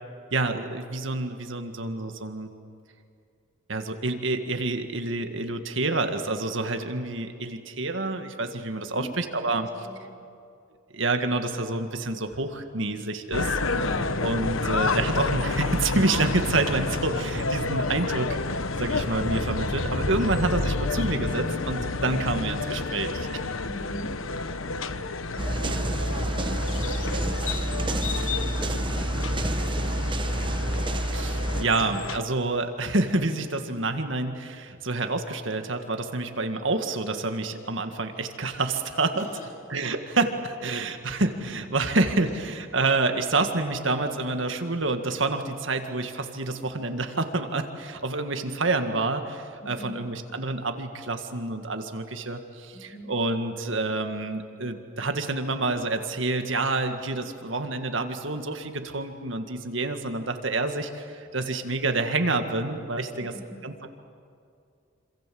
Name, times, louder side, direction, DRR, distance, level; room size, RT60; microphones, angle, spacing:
voice 1, 0.3-2.5 3.7-9.7 10.9-13.6 14.2-18.4 18.8-23.4 31.1-39.3 39.7-63.3 63.6-63.9, right 2 dB, 65° right, 6 dB, 1.9 m, -28 dB
voice 2, 9.4-10.1 13.7-14.2 23.6-24.2 25.3-30.2 39.1-39.5 49.6-50.0 52.7-53.1 63.2-63.6, equal, 35° left, 1 dB, 4.1 m, -43 dB
sound 1, 13.3-32.2, left 3 dB, 80° left, 1.1 m, -29 dB
sound 2, 25.4-31.6, right 1 dB, 25° right, 1.0 m, -28 dB
27.5 x 27.0 x 7.8 m, 2.4 s
head